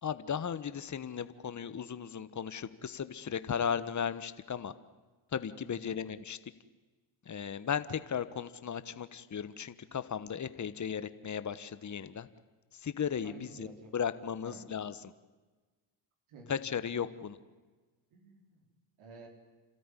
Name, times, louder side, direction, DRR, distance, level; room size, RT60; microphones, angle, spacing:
voice 1, 0.0-4.7 5.3-6.4 7.3-12.3 12.8-13.7 13.9-14.9 16.5-17.4, left 7 dB, 35° left, 13 dB, 1.3 m, -36 dB
voice 2, 5.6-5.9 13.2-13.9 14.4-14.7 16.3-16.6 18.1-18.7 19.0-19.3, right 3 dB, 75° right, 2 dB, 4.1 m, -52 dB
29.0 x 13.5 x 9.9 m, 1.3 s
supercardioid pair, 60°, 49 cm